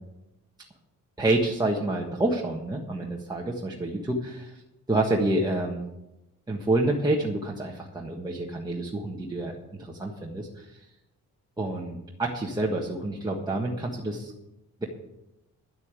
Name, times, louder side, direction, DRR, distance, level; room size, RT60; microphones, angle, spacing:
voice 1, 1.2-4.4 4.9-5.8 6.5-10.8 11.6-14.3, right 2 dB, 15° right, -2 dB, 1.4 m, -28 dB
11.0 x 8.4 x 8.4 m, 0.92 s
cardioid pair, 145°, 31 cm